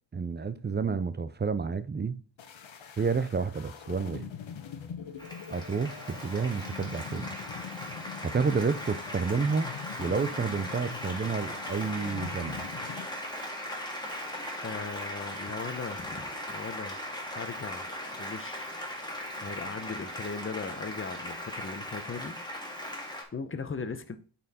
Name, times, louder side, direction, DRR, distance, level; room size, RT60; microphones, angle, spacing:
voice 1, 0.1-2.2 3.0-4.3 5.5-7.3 8.2-9.7 10.0-12.7, right 5 dB, 25° right, 0.4 m, -30 dB
sound 1, 2.4-13.1, left 8 dB, 80° left, 1.1 m, -44 dB
sound 2, 3.8-5.3 7.6-8.7 9.0-9.7 11.5-12.7, left 7 dB, 60° left, 1.2 m, -53 dB
Applause, 5.2-23.2, equal, 10° left, 1.8 m, -38 dB
voice 2, 14.6-17.0 17.3-17.9 18.2-18.7 19.4-22.3 23.3-24.2, left 4 dB, 25° left, 0.8 m, -38 dB
8.6 x 4.3 x 4.2 m
wide cardioid pair, 120°, 45 cm